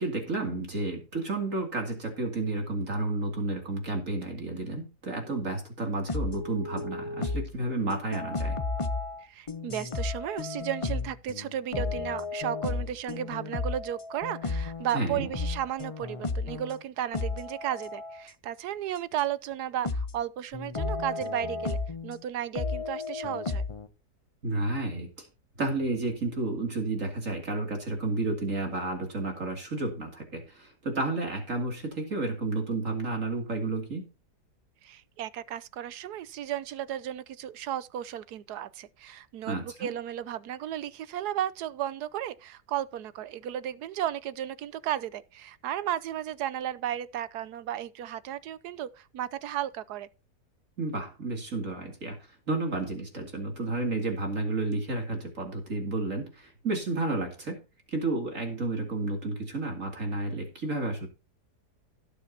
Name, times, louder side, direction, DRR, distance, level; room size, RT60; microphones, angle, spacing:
voice 1, 0.0-8.6 14.9-15.3 24.4-25.3 25.6-34.0 39.5-39.9 50.8-52.2 52.5-57.6 57.9-61.1, right 2 dB, 50° right, 2.9 m, -31 dB
sound 1, 6.1-7.6 7.9-16.8 17.1-18.2 19.2-19.3 19.8-20.2 20.5-22.2 22.6-23.9, left 3 dB, 35° left, 0.5 m, -33 dB
voice 2, 9.2-23.6 34.8-50.1, right 11 dB, 75° right, 1.2 m, -34 dB
17.5 x 6.9 x 2.8 m
omnidirectional pair, 1.8 m